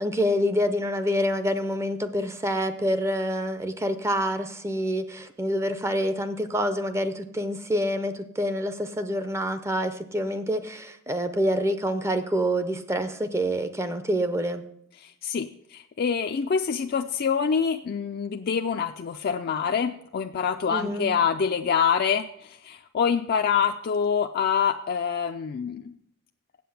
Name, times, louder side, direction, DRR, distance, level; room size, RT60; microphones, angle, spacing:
voice 1, 0.0-14.6 20.7-21.1, equal, 10° right, 10 dB, 0.5 m, -27 dB
voice 2, 15.0-26.0, left 6 dB, 45° left, 5 dB, 0.3 m, -26 dB
7.8 x 7.6 x 7.0 m, 0.73 s
head